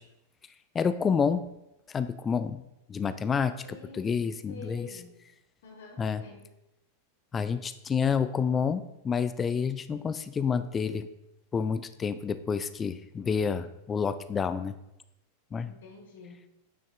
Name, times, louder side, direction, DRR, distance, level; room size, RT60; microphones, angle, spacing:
voice 1, 0.7-1.4 1.9-2.6 2.9-3.5 4.0-4.9 6.0-6.2 7.3-11.1 11.5-14.7 15.5-15.7, left 6 dB, 20° left, 12 dB, 0.4 m, -28 dB
voice 2, 3.6-5.1 5.6-6.5 15.6-16.4, left 2 dB, 55° left, 1 dB, 1.3 m, -48 dB
9.2 x 6.3 x 2.3 m, 0.90 s
figure-of-eight pair, 90°, 0 cm